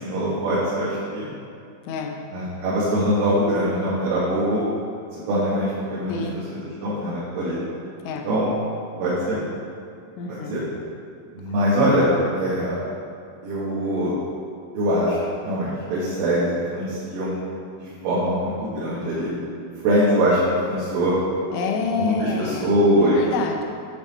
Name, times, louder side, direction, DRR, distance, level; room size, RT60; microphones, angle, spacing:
voice 1, 0.0-1.3 2.3-4.6 5.3-6.1 6.5-7.6 8.3-8.5 9.0-9.4 10.3-10.6 11.3-12.1 12.3-12.8 13.4-14.1 14.7-15.2 15.4-17.4 18.0-19.3 19.8-21.1 21.9-23.2, equal, 80° right, -9 dB, 3.9 m, -22 dB
voice 2, 1.8-2.2 6.1-6.4 8.1-8.3 10.2-10.6 11.5-11.6 21.5-22.7 23.0-23.6, left 4 dB, 80° left, 2 dB, 3.1 m, -28 dB
9.3 x 5.6 x 4.2 m, 2.5 s
omnidirectional pair, 5.7 m